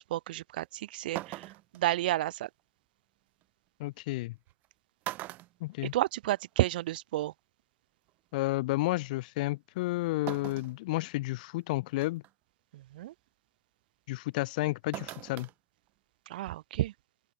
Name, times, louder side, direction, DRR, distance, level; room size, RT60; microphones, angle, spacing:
voice 1, 0.0-2.5 5.8-7.3 12.7-13.1 16.3-16.9, right 15 dB, 65° right, 3.3 m, -31 dB
sound 1, 0.6-0.7 1.1-1.8 3.4-3.5 4.5-4.7 5.0-6.4 6.8-6.9 8.1-8.2 10.3-10.8 11.3-11.4 12.0-12.3 14.9-15.5 15.9-16.0, right 17 dB, 30° right, 1.8 m, -41 dB
voice 2, 3.8-4.3 5.6-5.9 8.3-12.2 14.1-15.5, left 20 dB, 55° left, 1.4 m, -31 dB
open air
supercardioid pair, 160°, 5 cm